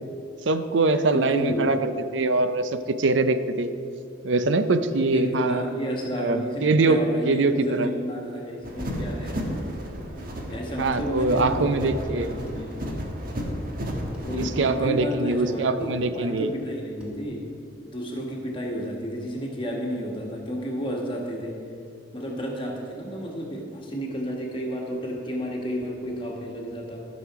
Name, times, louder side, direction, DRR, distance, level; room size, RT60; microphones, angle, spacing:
voice 1, 0.5-3.7 4.2-5.6 6.1-7.9 10.8-12.3 14.3-16.5, right 3 dB, 75° right, 10 dB, 0.5 m, -23 dB
voice 2, 1.1-1.7 5.0-9.4 10.5-12.7 14.2-17.5 17.8-21.6 22.1-27.0, equal, 25° left, -1 dB, 1.5 m, -31 dB
sound 1, 8.6-14.8, equal, 50° right, 1.3 m, -32 dB
sound 2, 11.6-11.8 12.5-13.0 14.1-14.3 15.3-15.5 15.8-16.0 17.0-17.2, left 1 dB, 5° right, 1.5 m, -44 dB
12.5 x 6.3 x 4.7 m, 2.5 s
head